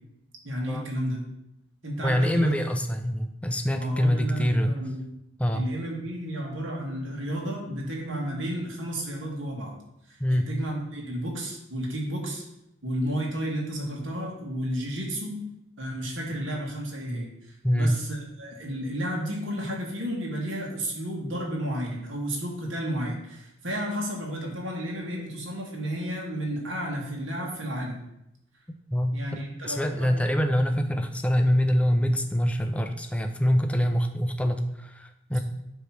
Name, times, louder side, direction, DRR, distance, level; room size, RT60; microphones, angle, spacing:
voice 1, 0.4-1.2 1.8-2.5 3.7-5.1 5.5-9.7 10.1-12.4 12.8-15.4 15.8-28.0 29.1-30.1 35.3-35.4, equal, 65° right, -2 dB, 1.9 m, -32 dB
voice 2, 2.0-4.7 5.4-5.7 10.2-10.5 17.6-17.9 28.9-29.2 29.6-35.4, equal, 5° left, 6 dB, 0.5 m, -25 dB
8.1 x 3.1 x 5.9 m, 0.83 s
head